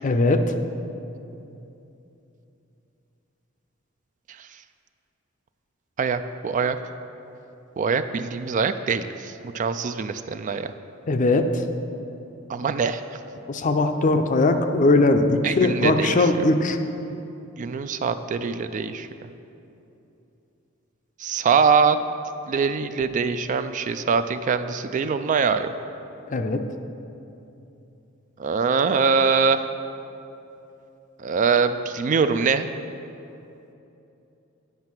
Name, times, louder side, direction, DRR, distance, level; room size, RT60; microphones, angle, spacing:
voice 1, 0.0-0.6 11.1-11.6 13.5-16.8 26.3-26.6, left 2 dB, 40° left, 7 dB, 0.5 m, -20 dB
voice 2, 6.0-6.8 7.8-10.7 12.5-13.0 15.4-16.1 17.6-19.1 21.2-22.0 22.5-25.7 28.4-29.7 31.2-32.7, right 5 dB, 40° right, 10 dB, 0.3 m, -23 dB
9.5 x 5.6 x 5.9 m, 2.8 s
head